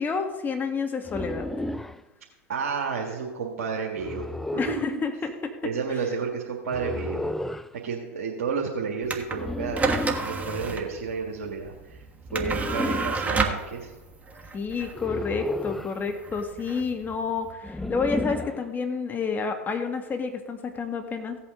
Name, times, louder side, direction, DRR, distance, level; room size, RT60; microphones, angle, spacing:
voice 1, 0.0-1.5 4.6-5.5 14.5-21.4, left 5 dB, 25° left, 5 dB, 1.8 m, -29 dB
sound 1, 1.0-2.0 4.0-4.9 6.7-7.7 9.3-10.4 12.3-13.3 14.9-16.0 17.6-18.6, left 1 dB, 5° left, 0.4 m, -32 dB
voice 2, 2.5-4.3 4.5-5.0 5.6-7.3 7.8-12.0 12.3-13.9, right 5 dB, 75° right, -3 dB, 1.8 m, -31 dB
sound 2, 9.0-17.5, right 4 dB, 20° right, 1.5 m, -31 dB
16.5 x 8.4 x 3.8 m, 1.1 s
hypercardioid pair, 90°, 8 cm